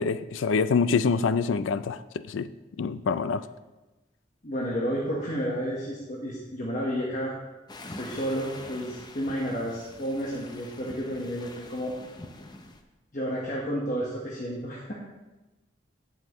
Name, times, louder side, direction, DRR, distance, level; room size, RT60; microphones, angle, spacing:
voice 1, 0.0-2.5 2.8-3.5, left 5 dB, 90° left, 14 dB, 0.4 m, -26 dB
voice 2, 4.4-7.4 7.9-11.9 13.1-14.9, equal, 40° left, -4 dB, 1.2 m, -31 dB
sound 1, 7.7-12.8, left 2 dB, 20° left, 0.6 m, -45 dB
15.5 x 5.8 x 3.0 m, 1.1 s
head